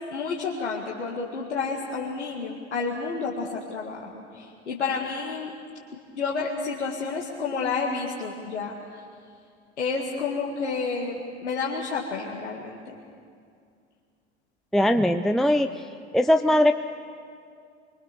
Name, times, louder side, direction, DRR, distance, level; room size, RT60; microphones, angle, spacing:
voice 1, 0.1-5.5 6.2-8.8 9.8-12.8, left 4 dB, 85° left, -3 dB, 2.1 m, -30 dB
voice 2, 14.7-15.9 16.1-16.7, left 1 dB, ahead, 7 dB, 0.6 m, -20 dB
25.5 x 23.0 x 6.9 m, 2.3 s
hypercardioid pair, 80°, 34 cm